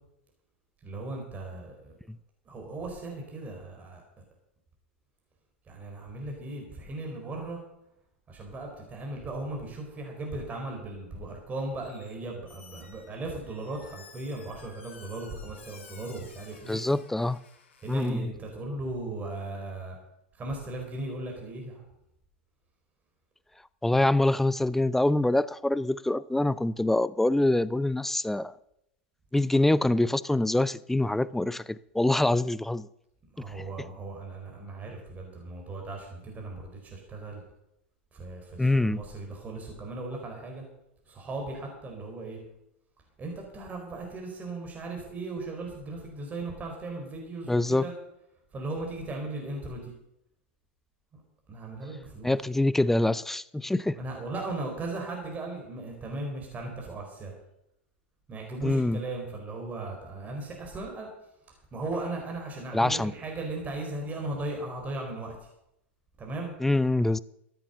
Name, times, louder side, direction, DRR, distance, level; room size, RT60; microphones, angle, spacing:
voice 1, 0.8-1.9 2.5-4.0 5.7-7.6 8.3-16.8 17.8-20.0 20.3-21.8 33.3-37.4 38.1-40.6 41.1-42.4 43.2-47.9 48.5-49.9 51.5-52.3 53.9-57.3 58.3-61.1 61.7-65.5 66.2-66.5, right 2 dB, 25° right, 4.1 m, -37 dB
Squeak, 11.8-12.2 12.5-18.1, left 5 dB, 80° left, 3.0 m, -53 dB
voice 2, 16.7-17.4 17.9-18.3 23.8-28.5 29.3-32.9 38.6-39.0 47.5-47.8 52.2-54.0 58.6-59.0 62.7-63.1 66.6-67.2, left 2 dB, 5° left, 0.4 m, -25 dB
14.0 x 9.0 x 6.8 m
hypercardioid pair, 105°, 7 cm